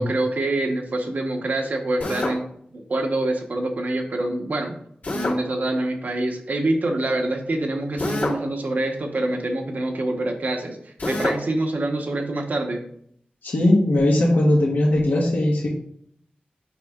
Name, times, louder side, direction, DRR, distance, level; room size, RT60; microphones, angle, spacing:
voice 1, 0.0-2.4 2.7-4.8 5.1-12.8, right 2 dB, 60° right, 4 dB, 1.0 m, -25 dB
Drill, 2.0-2.4 5.0-5.4 8.0-8.4 11.0-11.4, left 2 dB, 65° left, 1.9 m, -26 dB
voice 2, 13.4-15.7, left 1 dB, 85° left, -4 dB, 1.3 m, -19 dB
8.1 x 5.3 x 2.4 m, 0.67 s
wide cardioid pair, 110°, 3 cm